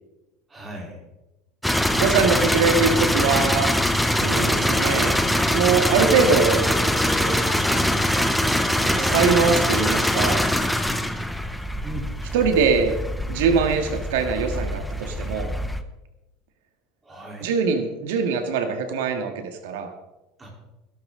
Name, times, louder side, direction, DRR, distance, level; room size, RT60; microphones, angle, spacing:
voice 1, 0.5-1.0 4.3-4.6 11.8-12.1 17.0-17.5 20.4-20.6, right 1 dB, 15° right, -1 dB, 3.7 m, -36 dB
sound 1, 1.6-15.8, left 1 dB, ahead, 0.7 m, -23 dB
voice 2, 2.0-3.7 4.1-4.5 4.7-5.2 5.5-6.6 9.0-10.4 12.3-13.0 13.3-15.5 17.4-19.9, right 5 dB, 90° right, 5 dB, 1.8 m, -22 dB
sound 2, 4.4-5.6 6.3-10.8 11.3-11.4, right 6 dB, 55° right, 2.2 m, -36 dB
17.0 x 11.5 x 3.8 m, 0.99 s
supercardioid pair, 145°, 0 cm